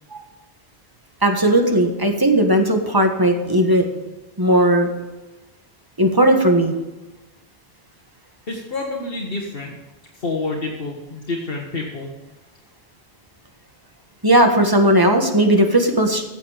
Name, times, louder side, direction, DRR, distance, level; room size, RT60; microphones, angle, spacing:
voice 1, 1.2-3.9 4.4-4.9 6.0-6.7 14.2-16.2, right 1 dB, 20° right, 4 dB, 1.5 m, -16 dB
voice 2, 8.5-9.8 10.1-12.1, left 3 dB, 65° left, -1 dB, 1.7 m, -28 dB
15.0 x 8.0 x 5.0 m, 1.1 s
omnidirectional pair, 1.0 m